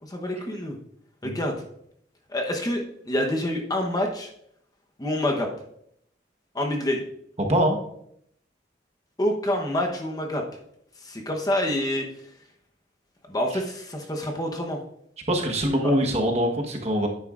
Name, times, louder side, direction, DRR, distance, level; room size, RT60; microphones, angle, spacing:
voice 1, 0.0-0.8 1.2-1.5 2.3-4.3 5.0-5.5 6.5-7.0 9.2-10.4 11.0-12.0 13.3-14.8 15.8-15.9, left 1 dB, 20° left, 2 dB, 0.9 m, -27 dB
voice 2, 15.3-17.1, equal, 35° right, 2 dB, 1.2 m, -23 dB
10.0 x 9.2 x 2.5 m, 0.72 s
head